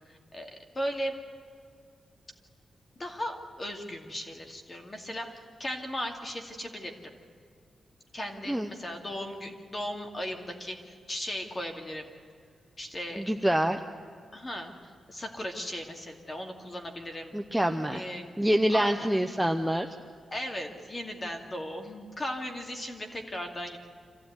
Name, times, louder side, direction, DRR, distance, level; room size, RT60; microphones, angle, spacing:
voice 1, 0.1-1.1 3.0-7.1 8.1-12.1 12.8-13.2 14.3-17.3 17.9-18.3 18.7-19.1 20.3-23.8, equal, 25° left, 4 dB, 2.4 m, -37 dB
voice 2, 13.2-13.8 17.3-18.0 18.4-19.9, equal, 5° right, 4 dB, 0.8 m, -26 dB
26.0 x 15.5 x 9.5 m, 2.2 s
wide cardioid pair, 165°, 0 cm